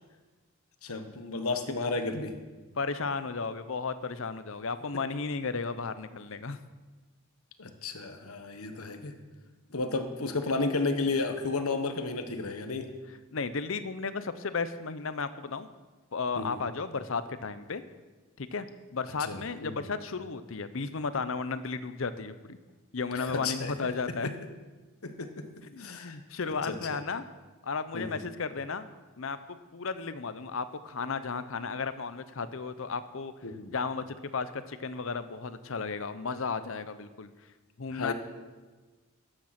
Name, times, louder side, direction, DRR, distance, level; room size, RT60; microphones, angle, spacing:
voice 1, 0.8-2.4 7.6-9.1 9.7-12.9 16.4-16.6 19.2-19.8 23.1-23.7 24.1-24.3 25.0-26.2 26.4-27.0 27.9-28.2 33.4-33.7 37.9-38.1, left 3 dB, 80° left, 7 dB, 1.2 m, -33 dB
voice 2, 2.8-6.6 13.3-15.7 16.1-17.8 18.4-18.7 18.9-22.6 22.9-24.3 25.7-27.2 27.6-28.9 29.2-33.3 33.7-34.0 34.3-37.3 37.8-38.1, left 4 dB, 60° left, 12 dB, 0.7 m, -34 dB
13.5 x 9.0 x 5.9 m, 1.3 s
head